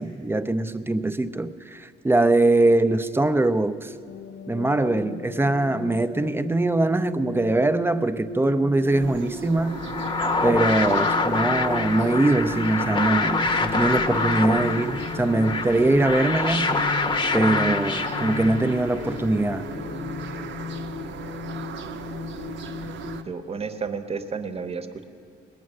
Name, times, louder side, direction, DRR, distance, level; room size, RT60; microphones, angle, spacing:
voice 1, 0.0-3.9 4.5-9.9 10.4-16.8 17.3-19.7, right 2 dB, 10° right, 11 dB, 0.5 m, -22 dB
sound 1, 4.1-23.3, left 6 dB, 65° left, 0.7 m, -36 dB
sound 2, 8.9-23.2, right 7 dB, 70° right, 0.8 m, -38 dB
sound 3, 9.6-19.0, left 3 dB, 25° left, 0.8 m, -26 dB
voice 2, 22.8-25.0, right 5 dB, 30° right, 9 dB, 0.9 m, -32 dB
20.0 x 9.0 x 6.4 m, 2.4 s
cardioid pair, 90°, 20 cm